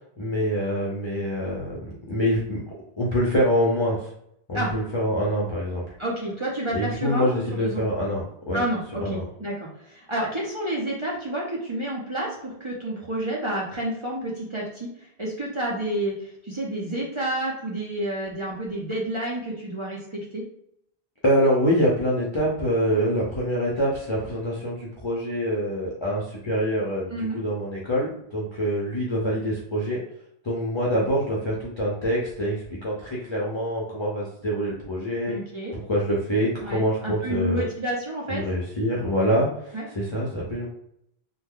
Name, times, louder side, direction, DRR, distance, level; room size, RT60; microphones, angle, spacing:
voice 1, 0.2-2.6 3.0-4.1 4.5-5.8 6.7-8.6 9.0-9.2 21.2-30.0 30.4-35.3 35.7-37.6 38.3-40.7, equal, 30° left, -5 dB, 0.6 m, -25 dB
voice 2, 6.0-7.8 8.5-14.9 15.2-20.4 27.1-27.4 35.3-35.7 36.6-38.4 39.7-39.8, right 1 dB, 30° right, -4 dB, 0.7 m, -30 dB
3.1 x 2.2 x 3.7 m, 0.73 s
omnidirectional pair, 1.1 m